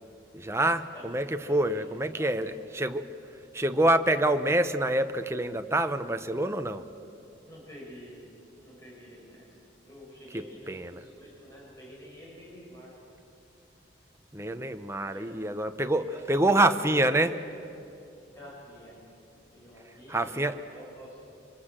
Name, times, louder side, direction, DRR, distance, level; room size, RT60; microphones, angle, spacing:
voice 1, 0.3-3.1 3.5-6.9 10.3-11.0 14.3-17.4 20.1-20.6, right 1 dB, 15° right, 8 dB, 0.8 m, -26 dB
voice 2, 1.4-1.8 2.1-2.3 7.4-8.2 8.6-12.9 15.1-15.3 15.9-16.6 18.2-19.0 19.5-21.2, equal, 15° left, -4 dB, 6.6 m, -49 dB
24.5 x 24.5 x 7.6 m, 2.7 s
head